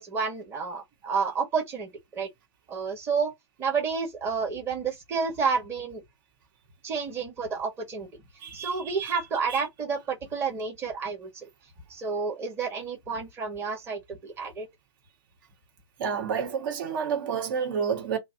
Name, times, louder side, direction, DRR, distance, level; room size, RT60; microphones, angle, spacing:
voice 1, 0.0-2.3 2.7-3.3 3.6-6.0 6.8-8.1 8.5-11.3 11.9-14.7, right 5 dB, 15° right, 1.4 m, -30 dB
voice 2, 8.4-9.1 9.5-9.6 16.0-18.2, right 6 dB, 45° right, 1.7 m, -30 dB
3.0 x 2.7 x 3.8 m
hypercardioid pair, 150°, 15 cm